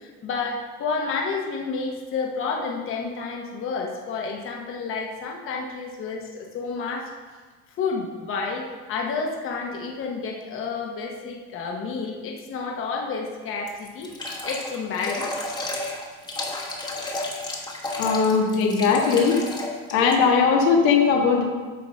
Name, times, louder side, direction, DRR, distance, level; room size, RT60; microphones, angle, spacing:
voice 1, 0.0-7.1 7.8-14.1 14.4-15.3, left 4 dB, 35° left, 0 dB, 1.1 m, -30 dB
sound 1, 13.7-20.2, left 2 dB, 10° left, 1.2 m, -32 dB
voice 2, 18.0-19.3 19.9-21.4, left 5 dB, 85° left, -1 dB, 1.7 m, -19 dB
9.4 x 3.8 x 6.3 m, 1.4 s
cardioid pair, 145°, 34 cm